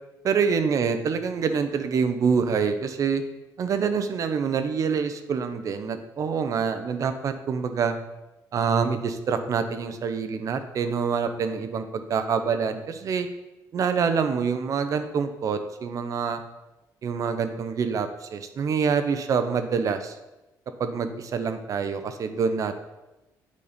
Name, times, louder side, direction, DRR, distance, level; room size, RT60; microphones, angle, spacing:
voice 1, 0.2-3.2 3.6-8.0 8.5-13.3 13.7-16.4 17.0-20.1 20.8-22.8, right 6 dB, 50° right, 9 dB, 0.7 m, -26 dB
8.4 x 4.1 x 5.1 m, 1.0 s
cardioid pair, 130°, 7 cm